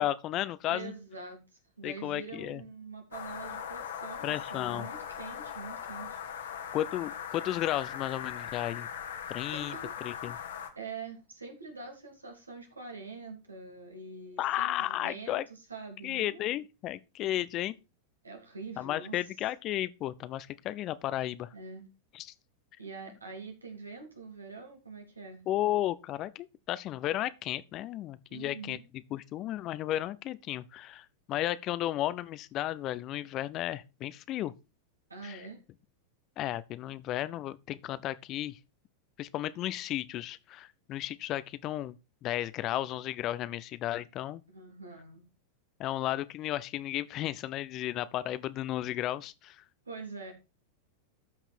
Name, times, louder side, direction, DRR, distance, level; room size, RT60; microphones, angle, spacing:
voice 1, 0.0-0.9 1.8-2.6 4.2-4.9 6.7-8.9 9.3-9.8 10.0-10.4 14.4-15.4 16.0-17.7 18.8-21.5 22.1-22.3 25.5-28.8 29.1-34.5 35.2-35.4 36.4-38.6 39.2-42.0 42.2-44.4 45.8-49.6, left 13 dB, 35° left, 0.7 m, -33 dB
voice 2, 0.6-1.4 1.8-6.7 9.5-9.9 10.7-16.5 17.2-17.3 18.2-19.1 21.5-21.9 22.8-25.4 28.3-28.8 35.1-35.6 44.5-45.2 49.8-50.3, right 4 dB, 80° right, 3.3 m, -45 dB
sound 1, 3.1-10.7, left 8 dB, 60° left, 1.7 m, -40 dB
13.5 x 5.9 x 4.5 m
figure-of-eight pair, 90°, 0 cm